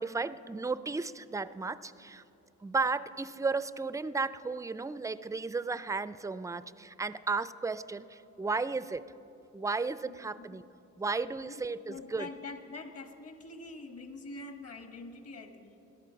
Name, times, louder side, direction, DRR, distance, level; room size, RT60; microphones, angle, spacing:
voice 1, 0.0-2.2 2.6-9.1 9.5-10.6 11.0-12.3, right 4 dB, 10° right, 15 dB, 0.4 m, -34 dB
voice 2, 10.0-10.7 11.4-11.6 11.9-15.8, left 3 dB, 55° left, 6 dB, 1.8 m, -45 dB
17.0 x 13.5 x 5.8 m, 2.9 s
cardioid pair, 90°, 30 cm